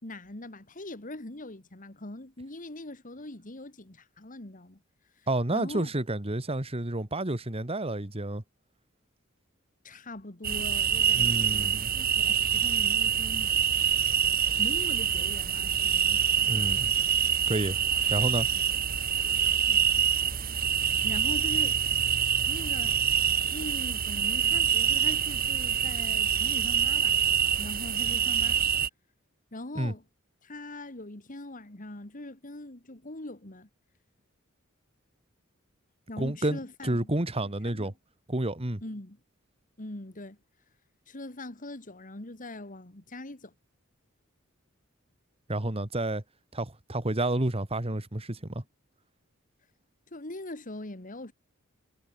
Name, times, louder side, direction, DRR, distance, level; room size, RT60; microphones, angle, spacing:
voice 1, 0.0-4.8 5.5-5.9 9.8-13.5 14.6-16.2 19.2-19.4 19.7-19.9 20.9-21.8 22.5-27.2 27.6-28.6 29.5-30.0 30.4-33.7 36.1-37.1 37.6-37.9 38.8-39.2 39.8-40.4 41.1-43.5 50.1-51.3, left 1 dB, 40° left, 2.3 m, -41 dB
voice 2, 5.3-8.4 11.1-11.9 16.5-16.9 17.5-17.8 18.1-18.5 19.1-19.2 29.8-29.9 36.2-37.9 38.3-38.8 45.5-46.2 46.5-48.6, right 1 dB, 30° right, 1.8 m, -30 dB
sound 1, 10.4-28.9, right 8 dB, 45° right, 2.1 m, -26 dB
head